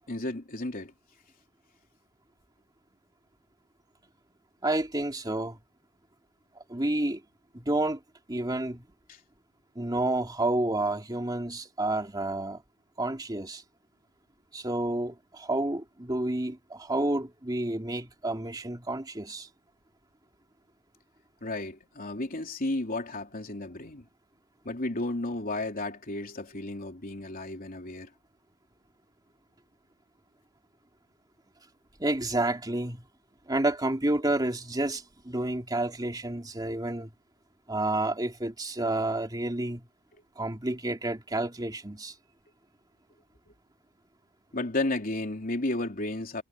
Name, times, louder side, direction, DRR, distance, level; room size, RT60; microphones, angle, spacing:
voice 1, 0.1-0.9 9.1-9.2 21.4-24.0 24.6-28.1 44.5-46.4, left 2 dB, 40° left, 3.4 m, -33 dB
voice 2, 4.6-5.6 6.7-7.2 7.5-8.0 8.3-8.8 9.7-12.6 13.0-13.6 14.5-19.5 32.0-33.0 33.5-37.1 37.7-39.8 40.4-42.1, right 2 dB, 20° right, 3.0 m, -30 dB
head